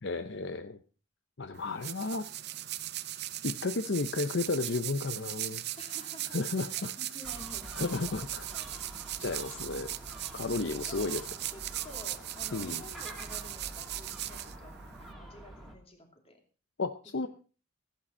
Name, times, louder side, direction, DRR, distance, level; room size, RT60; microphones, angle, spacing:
voice 1, 0.0-0.8 1.4-2.3 3.4-5.6 6.3-6.9 7.8-8.5 9.2-9.9 10.3-11.3 12.5-12.8 16.8-17.3, left 3 dB, 55° left, 9 dB, 0.7 m, -33 dB
sound 1, 1.5-15.1, right 14 dB, 50° right, 0.6 m, -39 dB
voice 2, 5.8-6.4 6.7-8.9 10.9-11.2 11.4-16.4, left 1 dB, 30° left, 4 dB, 2.7 m, -51 dB
Gull seagull, 7.2-15.8, right 1 dB, ahead, 2.5 m, -47 dB
16.0 x 8.9 x 5.4 m, 0.36 s
head